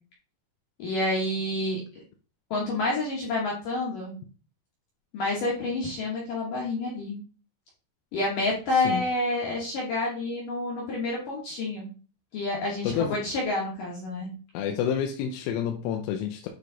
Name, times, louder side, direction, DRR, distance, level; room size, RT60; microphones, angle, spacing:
voice 1, 0.8-1.8 2.5-4.2 5.1-7.2 8.1-11.9 12.3-14.3, left 2 dB, 70° left, -3 dB, 2.1 m, -28 dB
voice 2, 8.7-9.0 12.8-13.2 14.5-16.5, left 8 dB, 85° left, 4 dB, 3.2 m, -29 dB
9.4 x 3.2 x 3.9 m, 0.37 s
omnidirectional pair, 5.8 m